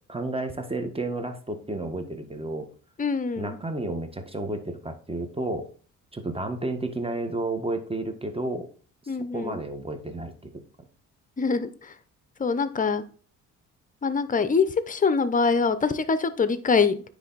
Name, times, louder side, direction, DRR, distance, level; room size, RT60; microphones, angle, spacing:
voice 1, 0.1-2.7 3.4-5.6 6.1-8.7 9.0-10.5 10.8-10.9, right 2 dB, 15° right, 7 dB, 1.4 m, -31 dB
voice 2, 3.0-3.6 9.1-9.6 11.4-11.9 12.4-13.0 14.0-17.0, left 5 dB, 25° left, 13 dB, 0.8 m, -24 dB
9.7 x 3.4 x 4.0 m, 0.41 s
supercardioid pair, 65°, 34 cm